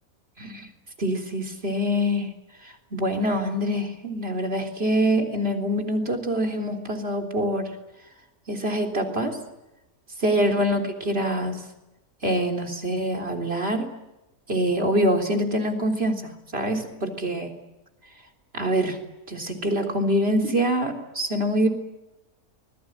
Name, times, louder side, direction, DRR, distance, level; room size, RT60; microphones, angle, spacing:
voice 1, 0.4-0.7 1.0-2.3 2.6-7.7 8.5-9.4 10.2-11.6 12.2-13.9 14.5-17.5 18.5-19.0 19.3-21.7, equal, 45° right, 4 dB, 3.9 m, -25 dB
25.0 x 20.5 x 9.2 m, 0.97 s
omnidirectional pair, 1.5 m